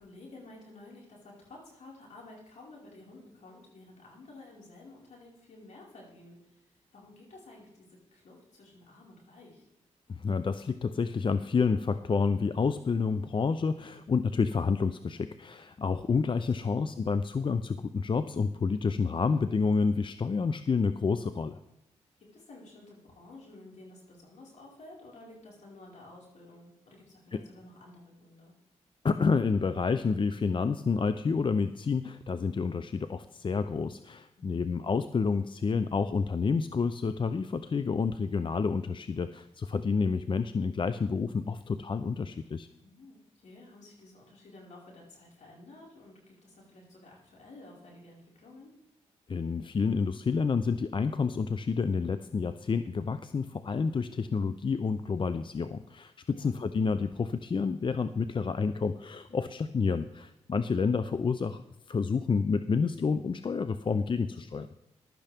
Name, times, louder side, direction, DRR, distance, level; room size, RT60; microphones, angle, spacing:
voice 1, 0.0-9.7 16.6-16.8 22.3-28.5 34.4-34.6 42.8-48.7 56.3-56.6, left 2 dB, 65° left, -3 dB, 4.9 m, -52 dB
voice 2, 10.1-21.6 27.3-27.4 29.0-42.7 49.3-56.1 56.4-61.6 61.9-64.7, left 5 dB, 40° left, 12 dB, 0.5 m, -29 dB
15.0 x 12.0 x 3.5 m, 0.83 s
supercardioid pair, 50°, 13 cm